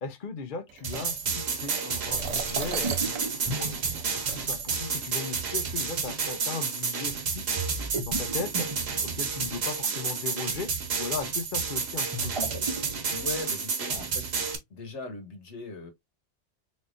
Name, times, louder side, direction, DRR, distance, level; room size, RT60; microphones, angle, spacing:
voice 1, 0.0-2.9 3.3-7.7 8.1-8.7 9.0-10.7 11.0-12.5, left 5 dB, 50° left, 0.8 m, -37 dB
sound 1, 0.7-4.8 5.7-5.8 6.5-6.9, right 7 dB, 90° right, 1.1 m, -39 dB
sound 2, 0.8-14.6, right 5 dB, 60° right, 1.2 m, -30 dB
sound 3, 2.2-4.9 7.6-9.6 11.9-13.4, right 2 dB, 30° right, 0.8 m, -36 dB
voice 2, 13.1-14.4 14.7-15.9, left 3 dB, 70° left, 1.5 m, -39 dB
4.2 x 3.5 x 2.5 m
omnidirectional pair, 1.2 m